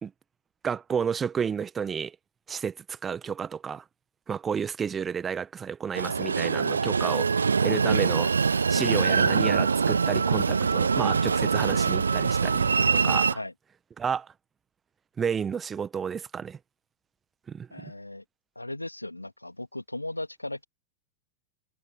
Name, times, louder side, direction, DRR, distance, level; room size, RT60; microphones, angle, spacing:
voice 1, 0.6-2.1 2.5-3.8 4.3-7.3 7.6-8.3 8.7-13.4 14.0-14.3 15.2-16.6 17.5-17.7, right 7 dB, 20° right, 1.6 m, -31 dB
Train, 5.9-13.3, right 5 dB, 75° right, 0.6 m, -24 dB
voice 2, 17.7-18.2 18.6-20.6, left 1 dB, 85° left, 2.7 m, -37 dB
figure-of-eight pair, 90°, 0 cm